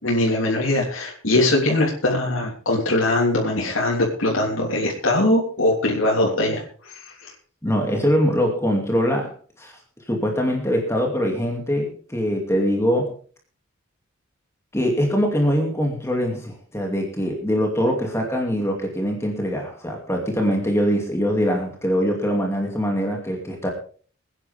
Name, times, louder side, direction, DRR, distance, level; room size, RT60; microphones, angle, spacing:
voice 1, 0.0-7.3, left 1 dB, 75° left, -3 dB, 3.3 m, -21 dB
voice 2, 7.6-9.3 9.6-9.7 10.1-13.1 14.7-23.7, equal, 15° left, 1 dB, 2.5 m, -23 dB
22.5 x 9.9 x 3.5 m, 0.42 s
head